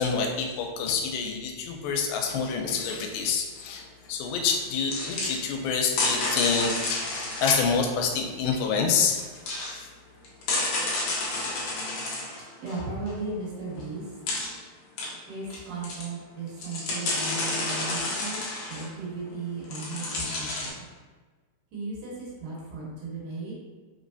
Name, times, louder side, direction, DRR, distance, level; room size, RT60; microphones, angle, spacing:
voice 1, 0.0-7.0 7.4-9.2 9.7-9.9, left 5 dB, 90° left, 2 dB, 2.4 m, -27 dB
sound 1, 4.5-4.6 4.9-5.4 5.9-7.7 9.1-9.7 10.2-13.1 13.8-13.9 14.3-14.6 15.0-15.6 15.8-16.1 16.5-18.9 19.6-20.7, left 2 dB, 70° left, 1.6 m, -30 dB
voice 2, 12.6-14.1 15.3-20.9 21.7-23.7, right 3 dB, 70° right, -6 dB, 2.5 m, -36 dB
5.5 x 3.1 x 2.6 m, 1.3 s
omnidirectional pair, 4.1 m